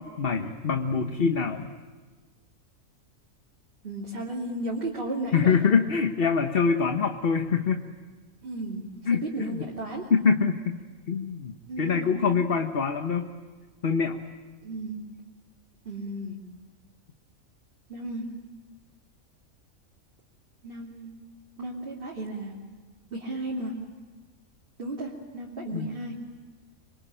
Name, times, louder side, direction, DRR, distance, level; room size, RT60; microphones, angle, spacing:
voice 1, 0.0-1.7 5.3-7.8 9.0-9.7 10.1-10.8 11.1-13.3 13.8-14.2 25.7-26.1, left 5 dB, 45° left, 6 dB, 1.2 m, -25 dB
voice 2, 3.8-5.6 8.4-10.0 11.7-12.4 14.6-15.0 15.8-16.4 17.9-18.3 20.6-21.1 21.6-22.6 23.1-23.7 24.8-26.1, right 2 dB, 40° right, -4 dB, 3.0 m, -34 dB
26.0 x 23.5 x 8.9 m, 1.4 s
omnidirectional pair, 1.5 m